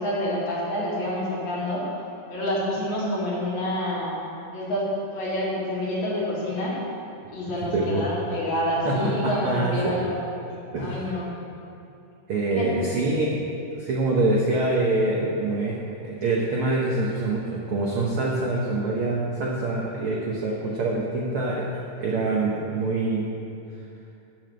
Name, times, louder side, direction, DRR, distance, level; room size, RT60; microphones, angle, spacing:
voice 1, 0.0-1.8 2.3-4.1 4.5-4.9 5.1-6.8 7.3-10.2 10.8-11.3 12.5-13.3, left 1 dB, 60° left, -7 dB, 3.4 m, -28 dB
voice 2, 7.7-8.1 8.8-10.0 10.7-11.1 12.3-13.3 13.8-21.7 22.0-23.4, right 2 dB, 75° right, -3 dB, 1.2 m, -25 dB
7.7 x 7.2 x 7.8 m, 2.7 s
omnidirectional pair, 3.8 m